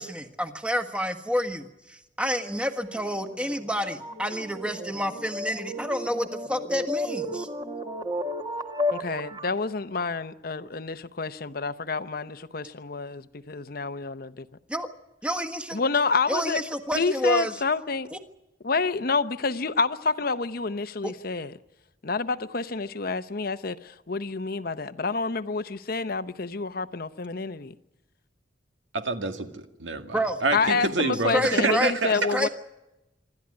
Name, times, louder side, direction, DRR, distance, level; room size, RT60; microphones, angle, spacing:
voice 1, 0.0-7.5 14.7-14.9 15.2-15.8 16.3-17.6 18.1-18.2 21.0-21.1 30.1-30.4 31.3-32.5, equal, 5° right, 1.5 m, -29 dB
sound 1, 2.4-9.6, left 1 dB, 25° right, 1.4 m, -34 dB
voice 2, 8.9-14.3 15.7-16.6 16.9-18.1 18.6-21.5 22.0-27.7 30.5-32.5, left 4 dB, 50° left, 0.8 m, -28 dB
voice 3, 28.9-32.3, right 3 dB, 80° right, 1.9 m, -27 dB
26.0 x 13.0 x 9.8 m
head